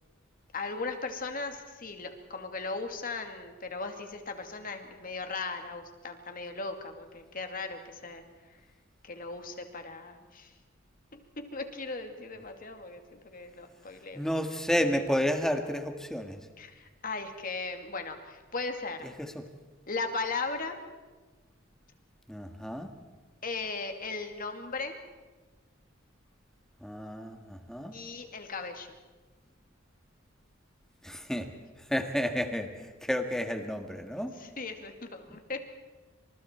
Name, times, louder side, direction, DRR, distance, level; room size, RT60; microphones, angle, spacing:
voice 1, 0.5-8.2 9.0-10.5 11.1-14.2 16.6-19.1 19.9-20.8 23.4-24.9 27.9-28.9 34.4-35.6, left 3 dB, 45° left, 5 dB, 2.4 m, -37 dB
voice 2, 14.1-16.4 19.0-19.4 22.3-22.9 26.8-27.9 31.0-31.5 31.9-34.3 35.3-35.4, equal, 5° left, 5 dB, 1.8 m, -31 dB
28.0 x 27.0 x 4.5 m, 1.3 s
head